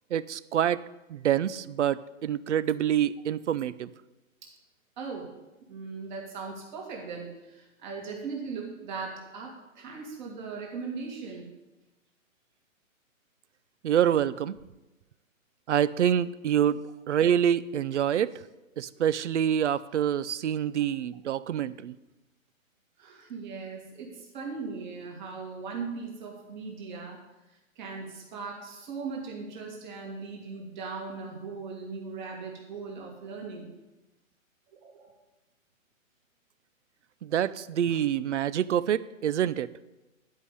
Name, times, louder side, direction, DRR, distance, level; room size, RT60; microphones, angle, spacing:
voice 1, 0.1-0.8 1.1-3.9 13.8-14.6 15.7-18.3 18.8-21.9 37.2-39.7, right 9 dB, 60° right, 18 dB, 0.5 m, -26 dB
voice 2, 5.0-5.3 5.7-11.5 23.0-27.2 27.5-33.7 34.8-35.1, right 4 dB, 35° right, 0 dB, 2.7 m, -39 dB
12.0 x 5.6 x 8.2 m, 1.0 s
hypercardioid pair, 170°, 41 cm